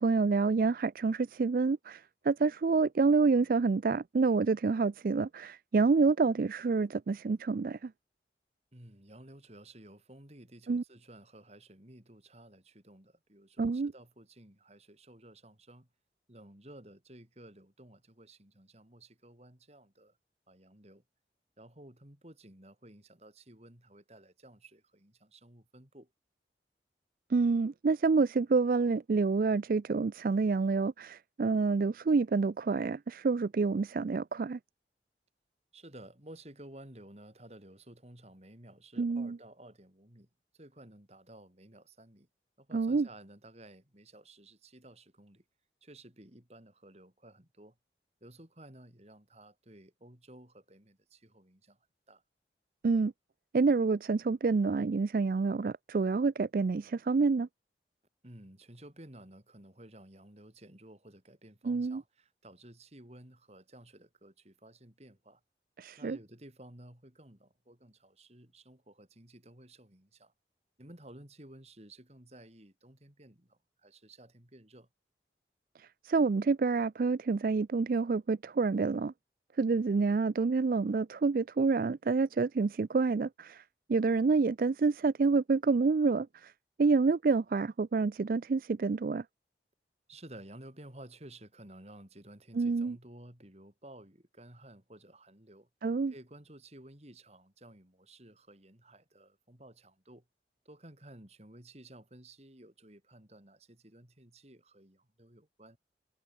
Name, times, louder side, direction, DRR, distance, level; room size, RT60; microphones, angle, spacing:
voice 1, 0.0-7.9 10.7-10.8 13.6-13.9 27.3-34.6 39.0-39.4 42.7-43.1 52.8-53.1 53.5-57.5 61.7-62.0 65.8-66.2 75.8-79.1 79.6-83.6 83.9-86.5 86.8-89.2 92.5-93.0 95.8-96.1, right 4 dB, 50° right, 0.4 m, -28 dB
voice 2, 8.7-15.9 16.3-20.2 20.5-21.0 21.6-26.1 35.7-42.3 42.6-45.4 45.8-47.8 48.2-51.8 52.1-52.2 58.2-65.4 66.0-70.3 70.8-74.9 90.1-95.7 96.1-100.3 100.7-105.8, right 1 dB, 35° right, 3.7 m, -54 dB
head